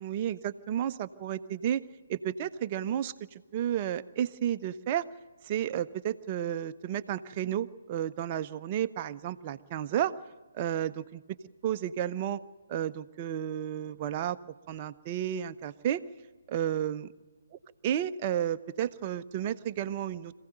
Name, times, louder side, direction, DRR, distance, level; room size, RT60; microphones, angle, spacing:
voice 1, 0.0-1.8 2.1-5.0 5.4-10.1 10.5-11.2 11.6-12.4 12.7-14.4 14.7-16.0 16.5-17.0 17.8-20.3, right 10 dB, 30° right, 11 dB, 0.7 m, -32 dB
26.0 x 16.0 x 9.1 m, 1.4 s
figure-of-eight pair, 135°, 0 cm